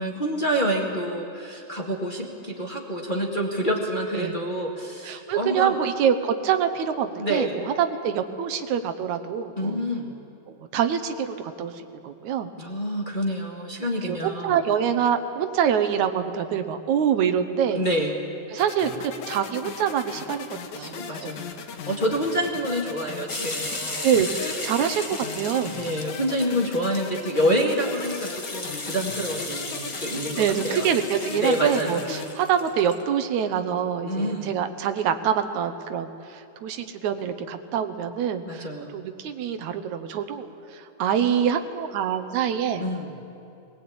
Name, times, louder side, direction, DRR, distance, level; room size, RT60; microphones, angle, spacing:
voice 1, 0.0-5.7 7.1-7.6 9.6-10.1 12.6-14.6 17.7-18.2 20.7-24.1 25.7-30.9 31.3-32.0 34.1-34.5 38.4-38.9 42.8-43.2, equal, 20° left, -1 dB, 1.7 m, -27 dB
voice 2, 5.0-9.8 10.5-11.7 12.0-12.5 14.0-17.8 18.5-21.3 24.0-25.7 30.4-38.6 38.9-42.8, right 8 dB, 80° right, 8 dB, 2.4 m, -25 dB
sound 1, 18.6-32.3, left 6 dB, 80° left, 2.7 m, -38 dB
sound 2, 23.3-33.0, left 2 dB, 40° left, 0.4 m, -35 dB
20.5 x 20.5 x 8.7 m, 2.9 s
omnidirectional pair, 3.3 m